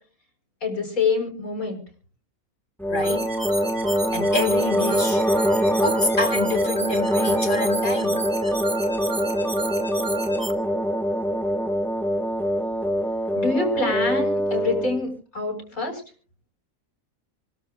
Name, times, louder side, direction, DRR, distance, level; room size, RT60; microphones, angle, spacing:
voice 1, 0.6-1.8 13.3-16.0, left 4 dB, 85° left, 6.1 m, -26 dB
sound 1, 2.8-15.0, equal, ahead, 0.6 m, -24 dB
voice 2, 2.9-3.3 4.1-5.3 5.8-8.2, left 2 dB, 35° left, 1.8 m, -27 dB
sound 2, 3.0-10.5, right 2 dB, 15° right, 1.5 m, -33 dB
28.0 x 12.5 x 2.5 m
omnidirectional pair, 1.5 m